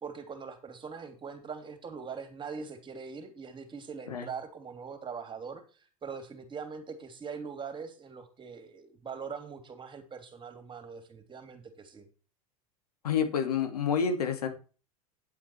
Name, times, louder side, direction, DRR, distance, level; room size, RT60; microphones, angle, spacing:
voice 1, 0.0-12.0, right 5 dB, 25° right, 8 dB, 2.8 m, -42 dB
voice 2, 13.0-14.5, left 7 dB, 80° left, 6 dB, 2.5 m, -28 dB
9.7 x 8.1 x 4.4 m, 0.35 s
hypercardioid pair, 90°, 19 cm